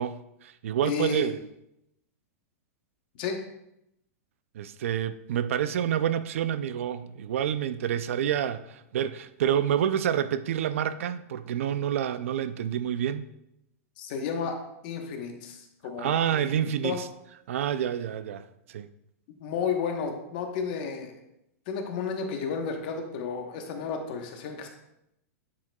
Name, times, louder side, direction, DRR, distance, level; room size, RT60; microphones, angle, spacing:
voice 1, 0.0-1.4 4.5-13.3 16.0-17.1 17.5-18.9, right 9 dB, 60° right, 0.4 m, -28 dB
voice 2, 0.8-1.3 3.2-3.4 14.0-14.6 14.8-17.0 19.3-21.2 21.7-24.7, left 6 dB, 35° left, 1.0 m, -32 dB
9.5 x 7.6 x 2.3 m
supercardioid pair, 180°, 8 cm